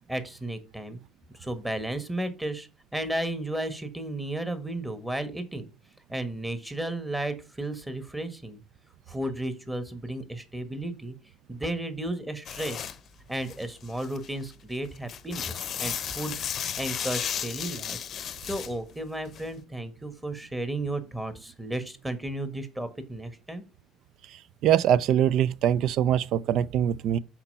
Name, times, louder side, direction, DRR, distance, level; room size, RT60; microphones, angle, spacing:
voice 1, 0.1-1.0 1.4-5.7 6.1-8.6 9.1-11.1 11.5-12.9 13.3-18.0 18.4-23.6, right 1 dB, 10° right, 1.5 m, -33 dB
sound 1, 12.5-13.0 13.3-14.4 14.8-18.7 19.3-19.5, left 9 dB, 50° left, 0.6 m, -34 dB
voice 2, 24.6-27.2, right 10 dB, 65° right, 0.4 m, -23 dB
5.8 x 4.5 x 5.4 m
hypercardioid pair, 65°, 0 cm